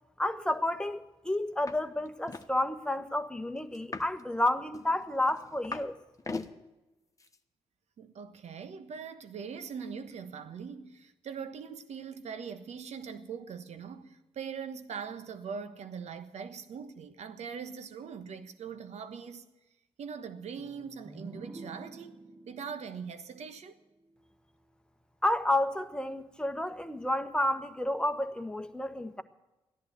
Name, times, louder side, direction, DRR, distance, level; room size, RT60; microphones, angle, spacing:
voice 1, 0.2-5.9 25.2-29.2, left 1 dB, 5° left, 1.3 m, -30 dB
sound 1, 1.7-1.8 2.0-2.5 3.7-4.2 4.7-5.9 6.2-6.5 7.2-7.3, left 3 dB, 25° left, 1.2 m, -39 dB
voice 2, 8.0-19.4 20.0-22.2 22.5-23.8, right 6 dB, 70° right, 1.3 m, -41 dB
sound 2, 20.6-24.3, right 2 dB, 25° right, 1.1 m, -49 dB
14.5 x 11.0 x 7.9 m
supercardioid pair, 50°, 12 cm